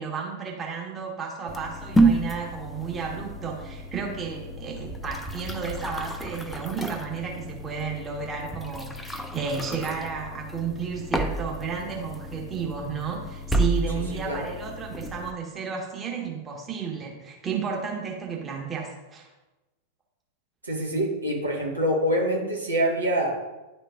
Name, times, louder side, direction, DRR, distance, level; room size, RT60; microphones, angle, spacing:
voice 1, 0.0-19.3, right 6 dB, 20° right, 0 dB, 1.3 m, -32 dB
sound 1, 1.5-15.3, right 2 dB, 10° left, 0.5 m, -30 dB
voice 2, 13.9-14.4 20.6-23.3, equal, 80° right, -2 dB, 1.4 m, -26 dB
10.5 x 4.5 x 2.5 m, 1.1 s
figure-of-eight pair, 90°, 0 cm